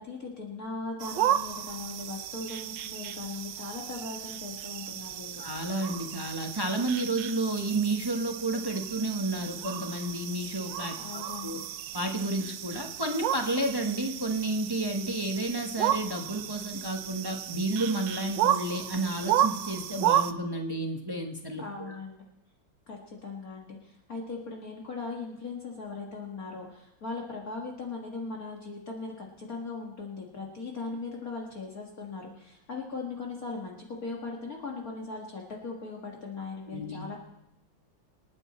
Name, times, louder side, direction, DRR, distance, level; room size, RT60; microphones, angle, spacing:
voice 1, 0.0-5.4 11.0-11.6 21.6-22.2 22.9-37.2, left 3 dB, 45° left, -1 dB, 2.1 m, -39 dB
sound 1, 1.0-20.3, right 11 dB, 70° right, 1.3 m, -33 dB
voice 2, 5.4-11.0 11.4-11.6 11.9-22.0 36.7-37.0, right 2 dB, 20° right, 3 dB, 0.7 m, -31 dB
27.0 x 9.1 x 4.3 m, 0.84 s
omnidirectional pair, 2.2 m